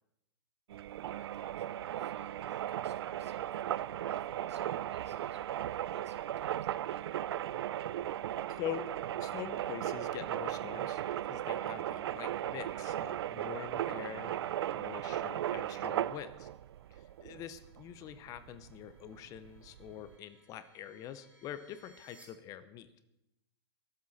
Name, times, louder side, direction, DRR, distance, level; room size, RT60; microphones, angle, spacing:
sound 1, 0.7-20.1, right 12 dB, 65° right, 0.4 m, -37 dB
voice 1, 1.0-7.1, right 6 dB, 85° right, 8 dB, 1.8 m, -56 dB
voice 2, 8.5-8.9 9.2-14.3 14.7-16.5 17.0-22.9, left 10 dB, 25° left, 12 dB, 0.7 m, -44 dB
sound 2, 12.6-22.2, right 1 dB, 10° right, 2.4 m, -69 dB
22.5 x 7.9 x 4.2 m, 0.87 s
hypercardioid pair, 145°, 14 cm